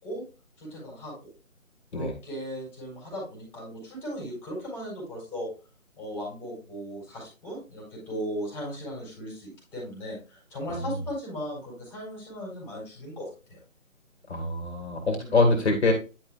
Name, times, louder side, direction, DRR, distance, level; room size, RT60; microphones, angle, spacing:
voice 1, 0.6-1.3 1.9-5.5 6.0-13.6 15.2-15.4, equal, 5° left, -3 dB, 4.3 m, -37 dB
voice 2, 14.3-15.9, left 2 dB, 50° left, 4 dB, 2.1 m, -24 dB
10.5 x 5.7 x 2.4 m, 0.31 s
figure-of-eight pair, 155°, 41 cm